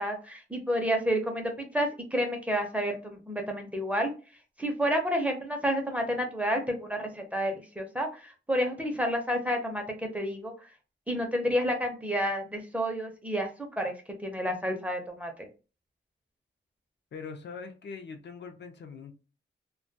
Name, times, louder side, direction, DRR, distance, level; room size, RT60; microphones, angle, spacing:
voice 1, 0.0-4.1 4.6-10.7 11.1-14.0 14.2-15.5, equal, 5° right, 3 dB, 0.5 m, -30 dB
voice 2, 17.1-19.1, left 5 dB, 60° left, 5 dB, 0.5 m, -42 dB
2.2 x 2.2 x 2.6 m, 0.33 s
wide cardioid pair, 140°, 20 cm